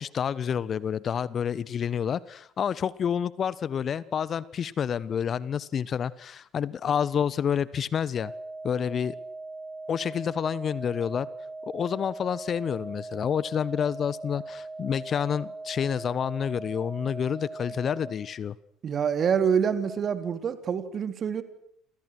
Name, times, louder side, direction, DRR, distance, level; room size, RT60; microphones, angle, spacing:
voice 1, 0.0-8.3 8.6-9.2 9.9-11.3 11.7-18.5, left 8 dB, 40° left, 20 dB, 1.2 m, -29 dB
sound 1, 8.1-18.2, right 3 dB, 10° right, 7.9 m, -40 dB
voice 2, 18.8-21.4, right 7 dB, 40° right, 11 dB, 3.4 m, -26 dB
29.0 x 28.0 x 6.4 m, 0.70 s
figure-of-eight pair, 60°, 0 cm